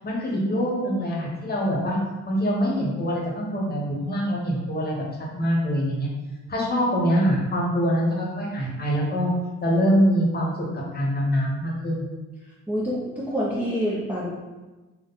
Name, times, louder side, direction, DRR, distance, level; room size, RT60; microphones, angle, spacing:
voice 1, 0.0-2.0 2.2-5.0 5.3-6.1 6.5-9.3 9.6-12.0, equal, 30° left, -3 dB, 1.3 m, -24 dB
voice 2, 12.7-14.3, equal, 5° right, -8 dB, 0.9 m, -26 dB
3.9 x 2.5 x 4.0 m, 1.2 s
cardioid pair, 90°, 30 cm